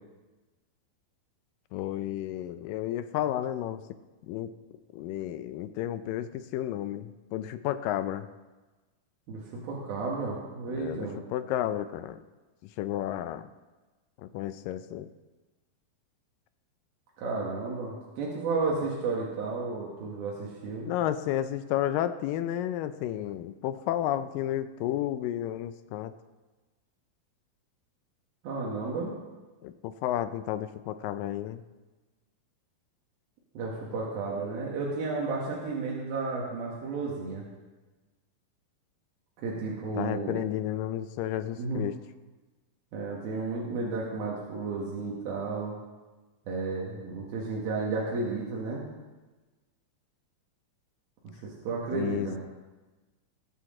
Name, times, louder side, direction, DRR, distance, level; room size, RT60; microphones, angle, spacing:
voice 1, 1.7-3.8 4.3-4.5 4.9-8.3 10.7-12.2 12.8-13.5 14.3-15.1 20.9-26.1 29.6-31.6 40.0-42.0 51.9-52.4, left 12 dB, 80° left, 12 dB, 2.1 m, -32 dB
voice 2, 9.3-11.2 17.2-20.9 28.4-29.1 33.6-37.4 39.4-40.4 41.6-41.9 42.9-45.7 46.5-48.9 51.4-52.4, right 3 dB, 85° right, -4 dB, 3.5 m, -32 dB
20.0 x 9.5 x 3.8 m, 1.2 s
omnidirectional pair, 4.2 m